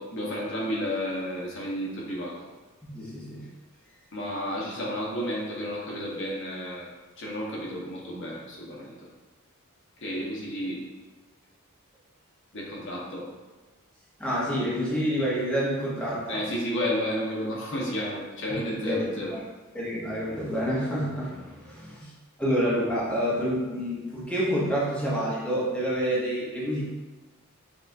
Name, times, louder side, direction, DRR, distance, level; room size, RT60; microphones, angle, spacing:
voice 1, 0.0-2.4 4.1-8.9 10.0-10.9 12.5-13.3 16.3-19.3, equal, 60° left, -4 dB, 1.0 m, -32 dB
voice 2, 2.8-3.4 14.2-16.4 18.8-19.4 19.7-22.1 22.4-26.8, equal, 5° left, -7 dB, 0.8 m, -28 dB
6.3 x 2.4 x 2.6 m, 1.2 s
head